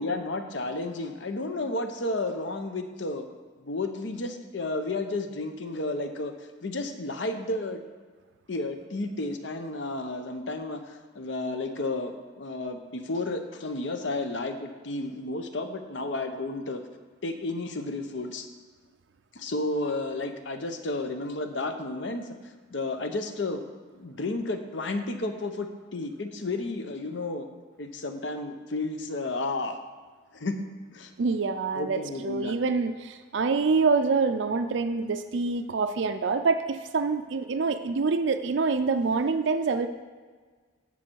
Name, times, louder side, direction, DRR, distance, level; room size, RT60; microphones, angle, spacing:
voice 1, 0.0-3.3 3.6-6.3 6.6-7.8 8.5-16.8 17.2-18.5 19.3-22.2 22.7-23.6 23.9-25.7 25.9-27.5 27.8-29.8 30.3-30.5 30.9-31.1 31.7-32.6, left 2 dB, 65° left, 7 dB, 0.9 m, -32 dB
voice 2, 31.2-39.9, right 4 dB, 65° right, 8 dB, 0.4 m, -26 dB
14.0 x 5.5 x 4.6 m, 1.5 s
head